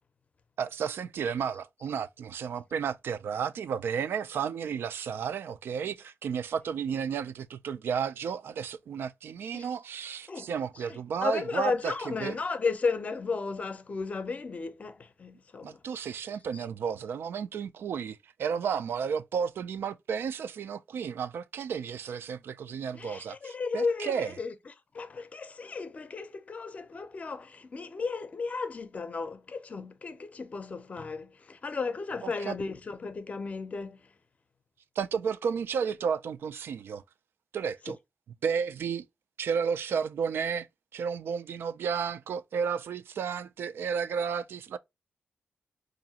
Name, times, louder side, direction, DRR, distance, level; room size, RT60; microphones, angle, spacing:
voice 1, 0.6-12.4 15.6-24.4 32.2-32.5 35.0-37.0 37.5-38.0 38.4-39.0 39.4-40.7 40.9-44.8, right 7 dB, 75° right, 0.4 m, -32 dB
voice 2, 10.9-15.8 22.9-24.5 24.9-34.0, left 4 dB, 35° left, 0.5 m, -34 dB
4.7 x 2.6 x 2.8 m
wide cardioid pair, 125°, 4 cm